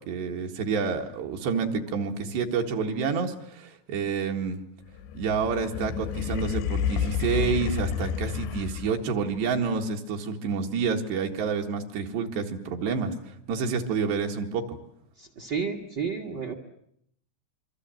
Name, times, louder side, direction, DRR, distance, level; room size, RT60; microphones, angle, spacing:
voice 1, 0.1-4.6 5.2-13.1 13.5-14.8, right 5 dB, 75° right, 3 dB, 3.9 m, -28 dB
sound 1, 4.9-9.2, left 8 dB, 85° left, 3.4 m, -30 dB
voice 2, 15.2-16.5, right 6 dB, 60° right, 7 dB, 1.1 m, -31 dB
26.5 x 24.0 x 7.8 m, 0.71 s
omnidirectional pair, 4.9 m